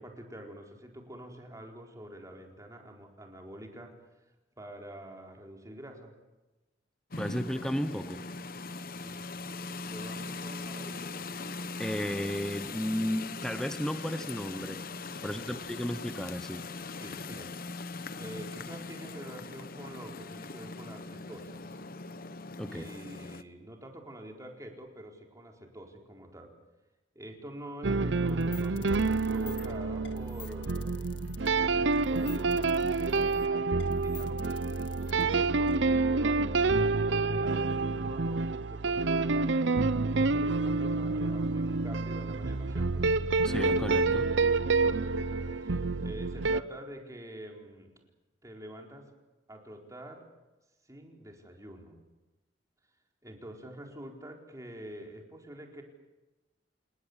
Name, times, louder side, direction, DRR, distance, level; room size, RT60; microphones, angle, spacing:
voice 1, 0.0-3.9 4.2-4.3 4.6-6.1 9.0-9.2 9.9-11.4 15.2-15.7 17.0-21.7 22.7-26.5 27.1-31.2 32.1-32.7 33.5-36.6 37.1-43.0 44.7-48.0 48.4-49.1 49.5-50.3 50.8-52.0 53.2-55.8, right 1 dB, 20° right, 2 dB, 4.5 m, -47 dB
sound 1, 7.1-23.4, left 3 dB, 55° left, 1.1 m, -40 dB
voice 2, 7.2-8.3 11.8-14.8 15.2-16.7 22.6-22.9 43.4-44.3, equal, 5° left, 10 dB, 1.0 m, -34 dB
sound 2, 27.8-46.6, right 3 dB, 80° right, 0.8 m, -28 dB
sound 3, 28.3-35.8, left 9 dB, 70° left, 1.8 m, -49 dB
28.5 x 19.5 x 8.2 m, 1.1 s
head